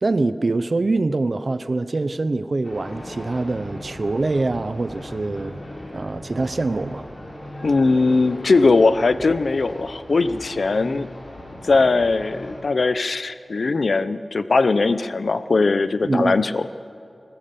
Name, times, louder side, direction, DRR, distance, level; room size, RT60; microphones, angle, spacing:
voice 1, 0.0-5.6 5.9-7.0 16.0-16.4, right 3 dB, 60° right, 13 dB, 0.7 m, -24 dB
sound 1, 2.6-12.6, left 1 dB, 60° left, 4.9 m, -38 dB
voice 2, 7.6-11.1 11.6-16.7, left 3 dB, 85° left, 13 dB, 0.7 m, -20 dB
20.5 x 20.0 x 6.9 m, 2.7 s
wide cardioid pair, 80°, 0 cm